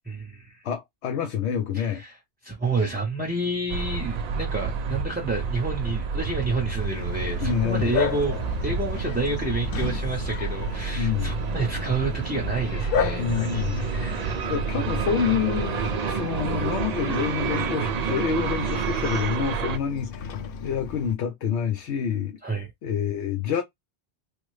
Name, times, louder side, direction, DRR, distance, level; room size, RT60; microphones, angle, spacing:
voice 1, 0.0-0.6 1.7-2.2 2.4-14.4 22.4-22.7, right 3 dB, 10° right, 0.6 m, -29 dB
voice 2, 0.6-2.0 7.4-7.9 11.0-11.3 13.2-13.8 14.5-15.8 16.1-20.3 20.6-22.4 22.8-23.6, left 8 dB, 90° left, 0.9 m, -27 dB
sound 1, 3.7-19.8, right 6 dB, 55° right, 0.4 m, -29 dB
Bark, 6.8-21.1, left 7 dB, 60° left, 0.7 m, -34 dB
3.3 x 2.1 x 3.1 m
omnidirectional pair, 1.1 m